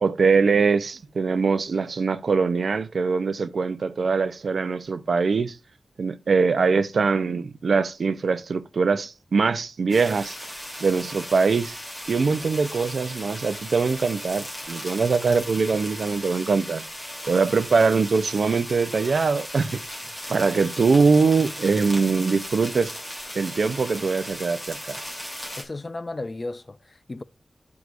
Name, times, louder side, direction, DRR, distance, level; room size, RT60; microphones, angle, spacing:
voice 1, 0.0-5.6 6.0-10.4 10.8-11.8 12.1-16.8 17.3-19.8 20.3-22.9 23.3-25.0, right 4 dB, 65° right, 0.5 m, -22 dB
sound 1, 9.9-25.6, equal, ahead, 3.0 m, -37 dB
voice 2, 25.6-27.2, left 2 dB, 30° left, 0.4 m, -34 dB
11.5 x 4.7 x 2.5 m
wide cardioid pair, 130°, 0 cm